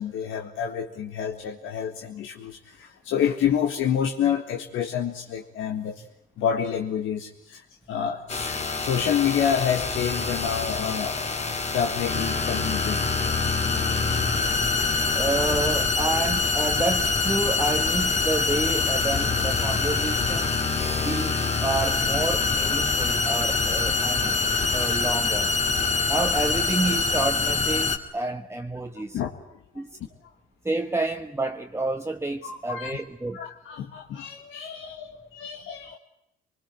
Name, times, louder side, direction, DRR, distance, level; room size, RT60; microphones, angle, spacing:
voice 1, 0.0-6.1 6.4-13.1 29.1-29.9 32.4-33.0 33.3-36.0, left 8 dB, 85° left, 1.9 m, -28 dB
sound 1, 8.3-28.0, left 4 dB, 35° left, 2.7 m, -25 dB
voice 2, 15.1-20.5 21.0-24.3 24.7-25.5 26.1-29.2 29.7-30.0 30.6-33.4, right 2 dB, 15° right, 1.2 m, -29 dB
24.5 x 20.5 x 9.3 m
cardioid pair, 90°, 20 cm